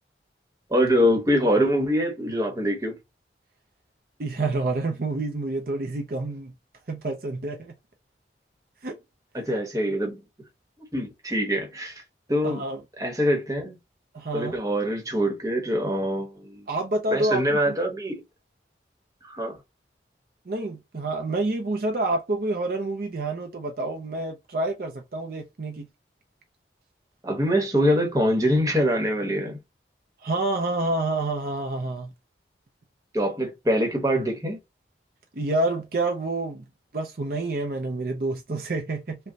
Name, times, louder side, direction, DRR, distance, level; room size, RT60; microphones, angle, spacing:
voice 1, 0.7-3.0 9.3-10.2 10.9-12.0 12.3-12.6 13.0-13.8 14.3-16.7 17.1-18.2 19.2-19.6 27.2-29.6 33.1-34.6, equal, 20° right, 1.0 m, -24 dB
voice 2, 4.2-6.5 6.9-7.7 8.8-8.9 12.4-12.8 14.1-14.6 16.7-17.8 20.5-25.9 30.2-32.1 35.3-36.6 36.9-39.2, right 2 dB, 50° right, 0.6 m, -28 dB
5.1 x 2.2 x 2.7 m
head